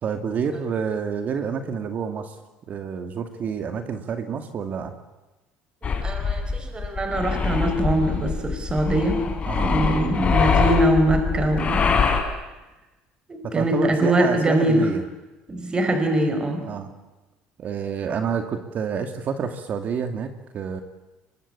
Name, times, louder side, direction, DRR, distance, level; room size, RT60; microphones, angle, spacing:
voice 1, 0.0-2.4 2.7-4.9 9.5-9.7 13.4-15.0 16.7-16.9 17.6-20.8, right 6 dB, 50° right, 7 dB, 2.4 m, -28 dB
sound 1, 5.8-12.2, left 5 dB, 35° left, 4.8 m, -23 dB
voice 2, 6.0-9.2 9.6-11.8 13.3-14.9 15.5-16.7, right 1 dB, 25° right, 6 dB, 4.7 m, -22 dB
24.5 x 22.0 x 8.7 m, 1.1 s
supercardioid pair, 90°, 4 cm